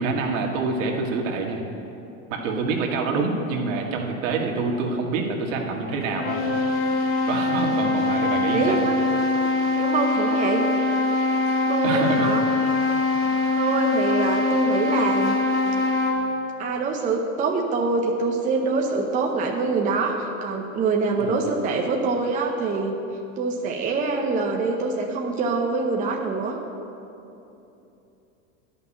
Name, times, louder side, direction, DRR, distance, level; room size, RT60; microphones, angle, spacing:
voice 1, 0.0-1.6 2.3-6.4 7.3-8.8 11.8-12.3 21.2-21.4, right 4 dB, 60° right, 1 dB, 1.9 m, -26 dB
sound 1, 6.0-16.3, left 3 dB, 30° left, 1.7 m, -23 dB
voice 2, 8.5-9.0 9.8-10.7 11.7-12.4 13.6-15.4 16.6-22.9 23.4-26.6, right 4 dB, 20° right, 1 dB, 0.7 m, -25 dB
11.0 x 5.8 x 8.8 m, 2.9 s
supercardioid pair, 135°, 43 cm